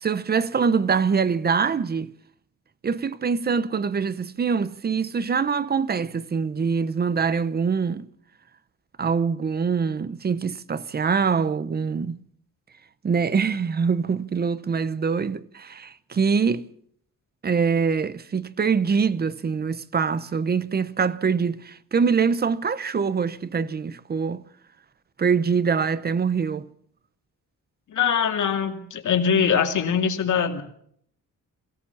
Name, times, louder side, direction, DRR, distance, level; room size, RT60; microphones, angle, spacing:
voice 1, 0.0-2.1 2.8-8.0 9.0-12.2 13.0-16.7 17.4-24.5 25.2-26.7, right 5 dB, 30° right, 0.7 m, -24 dB
voice 2, 27.9-30.6, left 7 dB, 65° left, 2.4 m, -22 dB
22.5 x 17.0 x 7.1 m
wide cardioid pair, 175°, 32 cm